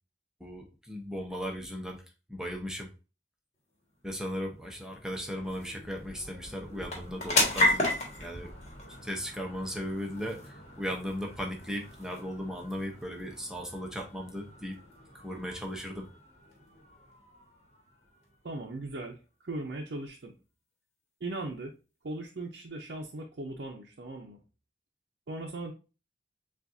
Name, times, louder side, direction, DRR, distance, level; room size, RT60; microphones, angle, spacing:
voice 1, 0.4-2.0 2.3-2.9 4.0-7.8 8.2-8.5 9.0-14.8 15.2-16.1, equal, 5° right, 1 dB, 0.7 m, -37 dB
sound 1, 3.9-18.8, left 2 dB, 40° left, 1.5 m, -36 dB
voice 2, 18.4-20.3 21.2-21.7 22.0-24.4 25.3-25.7, right 2 dB, 75° right, 0 dB, 0.6 m, -38 dB
7.0 x 2.5 x 2.6 m, 0.31 s
head